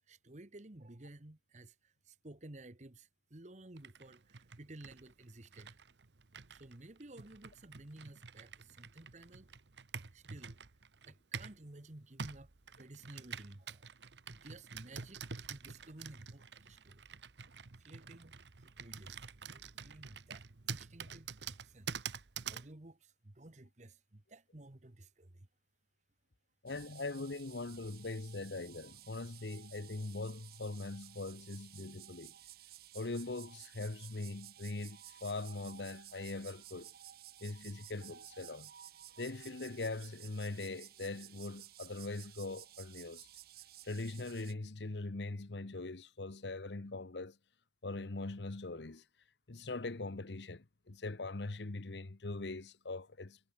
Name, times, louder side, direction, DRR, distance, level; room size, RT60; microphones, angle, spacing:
voice 1, 0.1-5.8 6.5-9.5 10.1-10.6 11.0-12.5 12.8-13.9 14.3-15.2 15.5-17.0 17.4-17.5 17.8-19.2 19.5-21.9 22.5-25.5, right 2 dB, 40° right, 1.3 m, -54 dB
Computer keyboard, 3.8-11.6 12.2-22.7, right 6 dB, 85° right, 1.1 m, -47 dB
voice 2, 26.6-32.3 32.9-36.9 37.4-38.7 39.2-43.3 43.8-47.4 47.8-49.0 49.5-53.4, left 2 dB, 80° left, 1.0 m, -41 dB
sound 1, 26.7-44.5, right 12 dB, 60° right, 0.8 m, -55 dB
head